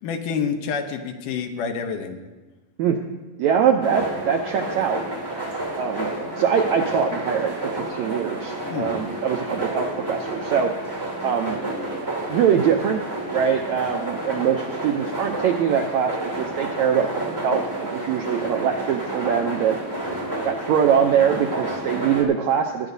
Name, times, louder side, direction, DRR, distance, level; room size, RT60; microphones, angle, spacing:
voice 1, 0.0-2.2 8.7-8.9, left 6 dB, 75° left, 5 dB, 2.3 m, -28 dB
voice 2, 3.4-5.0 5.8-6.1 6.4-10.7 11.2-11.6 12.3-13.0 13.3-19.8 20.4-22.9, right 7 dB, 85° right, 3 dB, 1.6 m, -23 dB
sound 1, 3.8-22.2, right 1 dB, 10° right, 1.6 m, -30 dB
20.5 x 10.0 x 2.7 m, 1.2 s
omnidirectional pair, 3.9 m